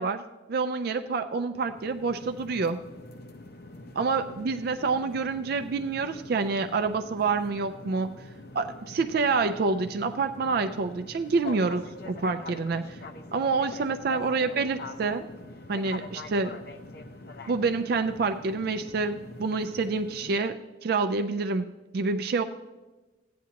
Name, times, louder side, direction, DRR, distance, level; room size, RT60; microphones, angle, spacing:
voice 1, 0.0-2.8 4.0-8.2 8.5-13.0 13.3-15.3 15.7-16.6 17.5-22.4, right 4 dB, 55° right, 8 dB, 0.4 m, -27 dB
sound 1, 1.5-20.4, left 2 dB, 55° left, 0.7 m, -44 dB
14.5 x 9.3 x 2.9 m, 1.2 s
head